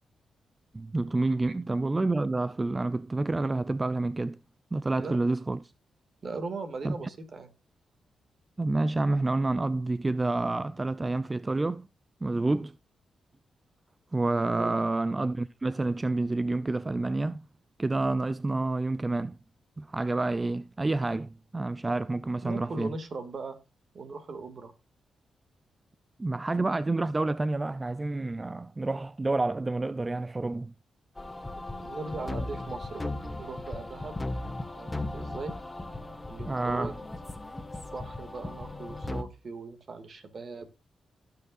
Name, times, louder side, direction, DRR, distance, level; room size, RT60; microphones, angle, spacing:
voice 1, 0.7-4.4 4.7-5.6 6.8-7.0 8.6-11.9 12.2-12.8 14.1-17.5 17.8-19.4 19.8-22.9 26.2-30.7 36.5-36.9, right 2 dB, 25° right, 0.5 m, -28 dB
voice 2, 6.2-7.5 14.4-14.7 22.4-23.6 23.9-24.7 31.6-33.1 33.4-34.2 34.8-35.6 36.3-36.9 37.9-40.7, right 3 dB, 55° right, 2.3 m, -39 dB
sound 1, 31.2-39.2, left 2 dB, 20° left, 1.7 m, -37 dB
17.0 x 6.5 x 2.6 m
supercardioid pair, 50°, 0 cm